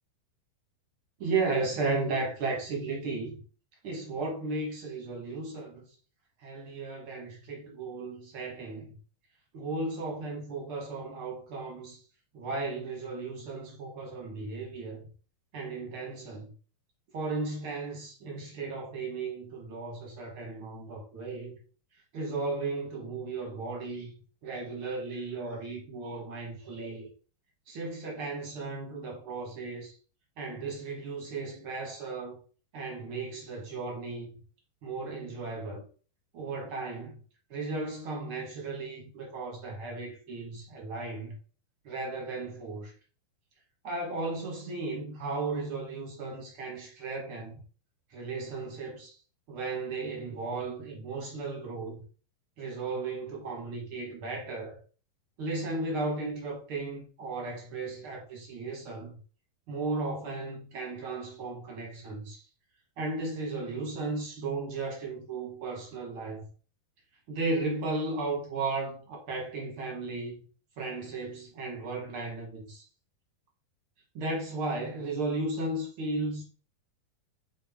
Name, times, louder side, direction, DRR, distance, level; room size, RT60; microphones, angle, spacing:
voice 1, 1.2-3.4 3.8-5.8 6.4-9.0 9.5-12.0 12.3-15.0 15.5-16.5 17.1-21.6 22.1-24.1 24.4-27.1 27.7-29.9 30.4-32.4 32.7-34.3 34.8-35.8 36.3-37.2 37.5-41.3 41.8-42.9 43.8-47.6 48.1-49.1 49.5-52.0 52.6-54.8 55.4-59.2 59.7-62.4 63.0-66.4 67.3-70.3 70.8-72.8 74.1-76.4, right 3 dB, 70° right, 1.3 m, -35 dB
6.9 x 4.2 x 3.5 m
omnidirectional pair, 4.3 m